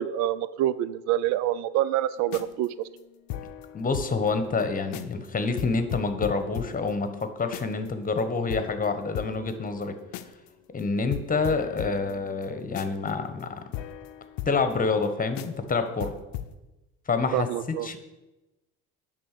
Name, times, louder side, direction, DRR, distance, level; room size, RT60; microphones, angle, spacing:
voice 1, 0.0-2.9 17.3-17.9, right 12 dB, 65° right, 17 dB, 0.4 m, -26 dB
sound 1, 2.2-4.3 4.6-4.7 4.9-5.3 5.6-7.9 8.2-8.3 8.5-10.5 10.8-10.9 11.1-15.1 15.4-15.7 16.0-16.5, left 11 dB, 75° left, 0.6 m, -38 dB
voice 2, 3.7-9.9 10.7-13.5 14.5-16.1 17.1-18.0, left 4 dB, 30° left, 9 dB, 1.2 m, -27 dB
10.0 x 3.8 x 6.7 m, 1.1 s
supercardioid pair, 75°, 29 cm